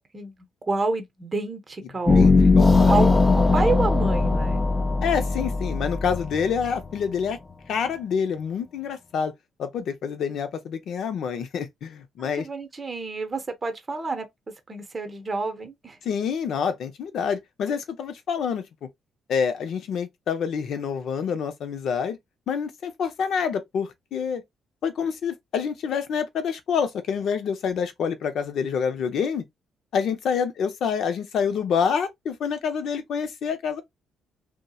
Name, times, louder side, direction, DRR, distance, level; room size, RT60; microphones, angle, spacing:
voice 1, 0.7-2.3 2.9-4.7 12.3-14.3 14.7-16.0, right 3 dB, 30° right, 0.7 m, -28 dB
sound 1, 2.1-7.3, left 3 dB, 20° left, 0.5 m, -20 dB
voice 2, 2.2-3.1 5.0-7.4 7.7-9.3 9.6-12.5 16.0-18.9 19.3-22.2 22.5-24.4 24.8-29.4 29.9-33.8, left 6 dB, 70° left, 0.6 m, -27 dB
2.8 x 2.1 x 2.3 m
cardioid pair, 90°, 0 cm